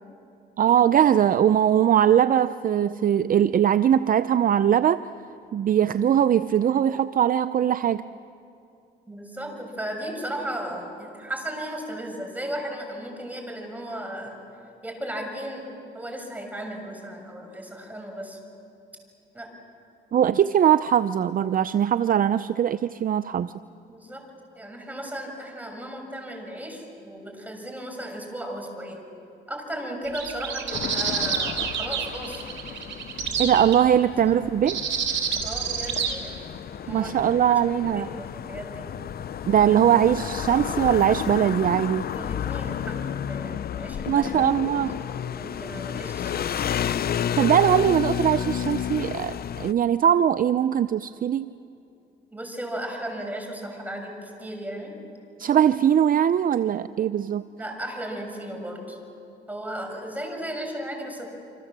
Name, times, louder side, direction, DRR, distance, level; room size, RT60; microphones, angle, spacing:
voice 1, 0.6-5.0 5.5-8.0 20.1-23.5 33.4-34.8 36.9-38.1 39.5-42.0 44.1-45.0 47.4-51.5 55.4-57.4, right 9 dB, 45° right, 13 dB, 0.5 m, -21 dB
voice 2, 9.1-14.4 14.8-15.6 15.9-18.4 19.3-19.5 23.9-24.2 24.5-29.0 29.5-33.0 34.2-34.4 35.4-38.9 42.1-44.3 44.7-46.7 52.3-55.0 57.6-59.0 59.5-61.3, right 1 dB, 10° right, 2 dB, 6.4 m, -36 dB
sound 1, 30.1-33.8 34.7-36.1, right 7 dB, 70° right, 3.6 m, -28 dB
sound 2, 30.7-49.7, left 9 dB, 50° left, 0.6 m, -32 dB
27.5 x 26.0 x 7.5 m, 2.6 s
cardioid pair, 90°, 20 cm